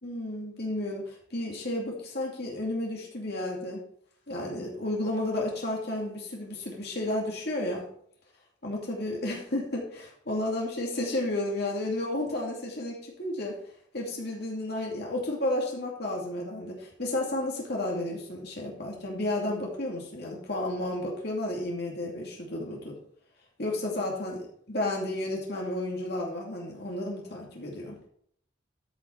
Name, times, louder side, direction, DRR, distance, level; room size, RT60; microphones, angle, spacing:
voice 1, 0.0-3.8 4.3-7.8 8.6-13.6 13.9-22.9 23.6-24.4 24.7-28.0, left 1 dB, 55° left, -1 dB, 2.5 m, -32 dB
13.0 x 5.9 x 4.5 m, 0.64 s
head